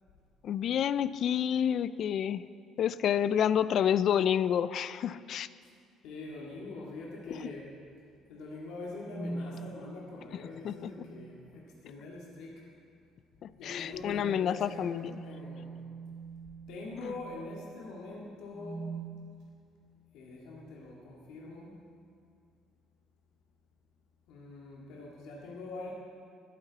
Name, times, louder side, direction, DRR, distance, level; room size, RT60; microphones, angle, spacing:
voice 1, 0.4-2.5 2.8-5.5 10.6-10.9 13.6-15.1 17.0-17.1, left 9 dB, 40° left, 16 dB, 0.3 m, -29 dB
voice 2, 6.0-7.8 8.3-12.6 13.6-15.8 16.7-19.0 20.1-21.8 24.3-25.9, left 2 dB, 75° left, -3 dB, 2.0 m, -44 dB
sound 1, 9.0-9.5 10.8-11.3 13.5-17.7 18.4-19.1, right 3 dB, 70° right, 3.7 m, -44 dB
20.5 x 9.4 x 4.1 m, 2.4 s
cardioid pair, 175°, 0 cm